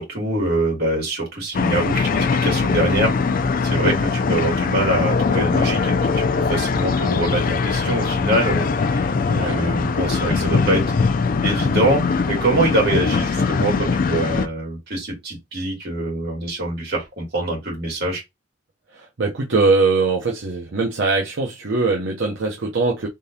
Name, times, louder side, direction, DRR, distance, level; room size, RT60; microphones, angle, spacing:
voice 1, 0.0-10.8 11.4-18.2, right 1 dB, 60° right, 2.5 m, -24 dB
sound 1, 1.5-14.5, left 4 dB, 50° left, 0.4 m, -21 dB
voice 2, 18.9-23.1, right 3 dB, 80° right, 0.8 m, -21 dB
3.8 x 3.7 x 2.7 m
head